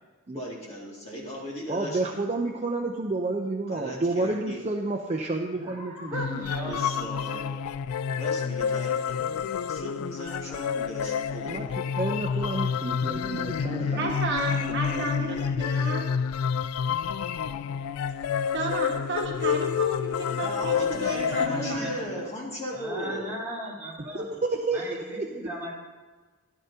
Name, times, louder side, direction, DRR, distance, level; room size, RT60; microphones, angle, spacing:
voice 1, 0.3-2.2 3.7-4.6 6.6-7.5 8.2-9.4 9.7-11.7 13.6-14.0 20.3-23.4, equal, 30° left, -4 dB, 2.1 m, -37 dB
voice 2, 1.7-6.4 11.4-11.7 11.9-14.1 14.7-15.3 24.0-25.3, right 2 dB, 30° right, 1 dB, 0.6 m, -30 dB
voice 3, 5.5-7.4 21.2-22.2 22.7-24.2 24.7-25.7, right 1 dB, 15° right, -9 dB, 3.6 m, -37 dB
sound 1, 6.1-22.2, left 7 dB, 85° left, 0.3 m, -29 dB
voice 4, 14.0-16.1 18.5-22.2, right 2 dB, 50° right, -2 dB, 1.6 m, -32 dB
13.5 x 11.5 x 2.8 m, 1.3 s
head